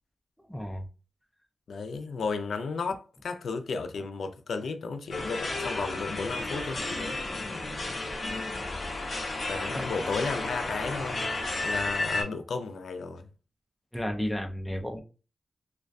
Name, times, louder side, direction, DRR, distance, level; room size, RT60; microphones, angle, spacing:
voice 1, 0.5-0.9 9.7-9.9 13.9-15.0, equal, 5° left, 0.4 m, -32 dB
voice 2, 1.7-7.2 9.5-11.3 11.6-13.3, left 4 dB, 85° left, 0.3 m, -34 dB
sound 1, 5.1-12.2, left 2 dB, 50° left, 0.7 m, -32 dB
2.3 x 2.2 x 2.4 m
wide cardioid pair, 135°, 0 cm